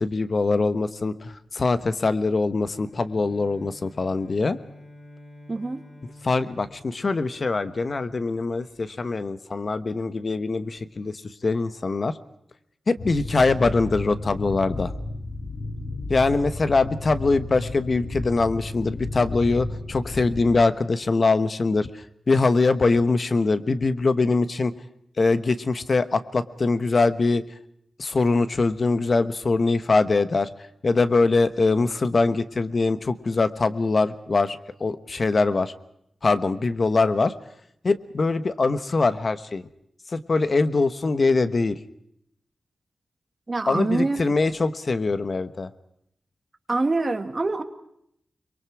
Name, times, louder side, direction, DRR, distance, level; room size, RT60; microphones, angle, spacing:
voice 1, 0.0-4.6 6.2-12.1 12.9-14.9 16.1-21.9 22.3-24.7 25.2-27.4 28.0-30.5 30.8-35.7 36.2-37.3 37.8-39.6 40.1-41.8 43.7-45.7, left 3 dB, 45° left, 12 dB, 1.1 m, -23 dB
Bowed string instrument, 2.7-7.9, left 1 dB, 10° left, 5.4 m, -49 dB
voice 2, 5.5-5.8 43.5-44.2 46.7-47.6, right 3 dB, 35° right, 6 dB, 2.0 m, -25 dB
sound 1, 13.0-20.5, left 2 dB, 70° left, 6.0 m, -33 dB
30.0 x 22.5 x 4.8 m, 0.72 s
wide cardioid pair, 105°, 0 cm